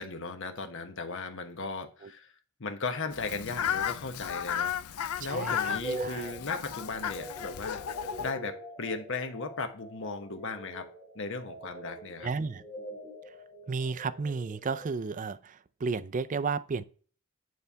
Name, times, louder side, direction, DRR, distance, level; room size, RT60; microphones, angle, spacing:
voice 1, 0.0-2.3 2.6-4.8 5.2-7.8 8.2-10.9 11.1-12.3, left 3 dB, 60° left, 1.1 m, -36 dB
Fowl, 3.1-8.3, left 9 dB, 90° left, 0.5 m, -34 dB
voice 2, 5.2-6.4 12.2-12.6 13.7-16.8, right 4 dB, 35° right, 0.4 m, -33 dB
sound 1, 5.8-15.0, right 1 dB, 15° right, 2.1 m, -44 dB
9.5 x 3.4 x 5.7 m
head